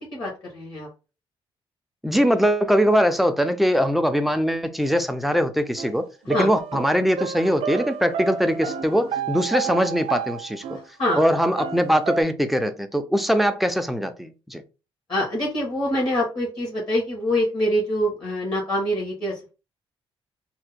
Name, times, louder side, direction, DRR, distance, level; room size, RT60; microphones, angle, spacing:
voice 1, 0.1-0.9 6.3-6.5 11.0-11.2 15.1-19.5, equal, 45° left, 1.2 m, -25 dB
voice 2, 2.0-10.8 11.2-14.6, equal, ahead, 0.3 m, -22 dB
sound 1, 5.8-5.9 6.3-10.8 11.1-12.2, right 6 dB, 85° right, 0.4 m, -31 dB
2.7 x 2.1 x 4.0 m
cardioid pair, 140°, 10 cm